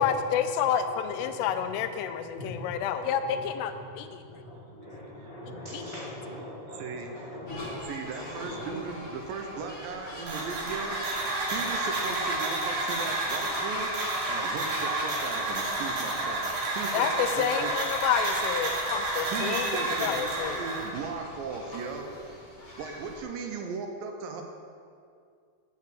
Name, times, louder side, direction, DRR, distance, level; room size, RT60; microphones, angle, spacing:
voice 1, 0.0-4.2 5.7-5.8 16.9-20.6, left 8 dB, 85° left, 9 dB, 2.6 m, -29 dB
voice 2, 4.2-7.7 8.2-8.7, left 1 dB, 35° left, -11 dB, 1.1 m, -41 dB
voice 3, 6.7-7.1 7.9-11.0 11.3-17.7 19.3-22.1 22.8-24.4, right 5 dB, 80° right, 3 dB, 2.1 m, -37 dB
sound 1, 7.5-23.2, left 1 dB, 55° left, 0.6 m, -39 dB
sound 2, 10.3-20.9, right 2 dB, 55° right, 3.0 m, -31 dB
7.5 x 6.0 x 7.3 m, 2.3 s
omnidirectional pair, 4.8 m